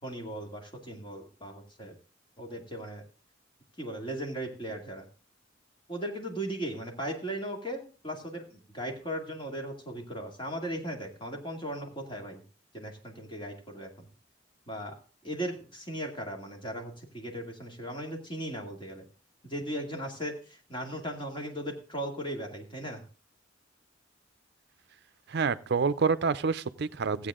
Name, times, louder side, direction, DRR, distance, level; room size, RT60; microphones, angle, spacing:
voice 1, 0.0-1.9 2.4-3.0 3.8-5.0 5.9-12.4 12.7-14.1 14.7-14.9 15.2-19.0 19.4-23.0, right 1 dB, 25° left, 2.3 m, -37 dB
voice 2, 25.3-27.3, right 5 dB, 55° right, 0.6 m, -27 dB
15.0 x 8.4 x 3.7 m
head